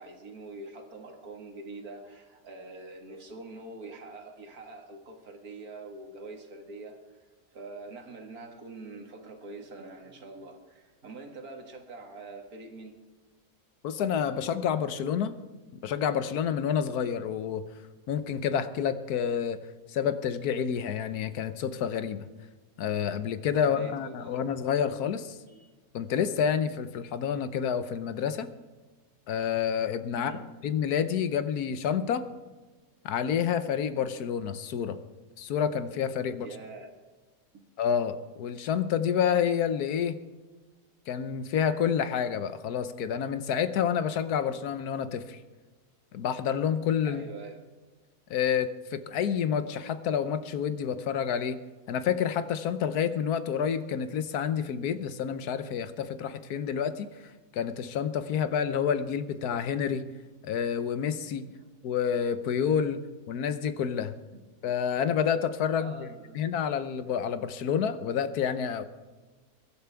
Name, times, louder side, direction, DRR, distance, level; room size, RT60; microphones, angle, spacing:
voice 1, 0.0-7.2 7.5-13.0 23.6-24.4 25.5-25.7 30.1-30.5 36.4-37.0 37.5-37.6 47.0-47.7 64.3-64.4 65.8-66.4, right 2 dB, 65° right, 3 dB, 2.2 m, -44 dB
voice 2, 13.8-15.4 15.8-17.6 18.1-19.6 19.9-22.3 22.8-25.4 25.9-28.5 29.3-30.3 30.6-32.3 33.0-35.0 35.4-36.5 37.8-40.2 41.1-45.4 46.1-47.2 48.3-51.6 51.9-60.1 60.4-61.4 61.8-63.0 63.3-64.1 64.6-66.1 66.3-68.9, left 8 dB, 75° left, 12 dB, 1.3 m, -29 dB
23.0 x 11.5 x 3.5 m, 1.3 s
omnidirectional pair, 1.7 m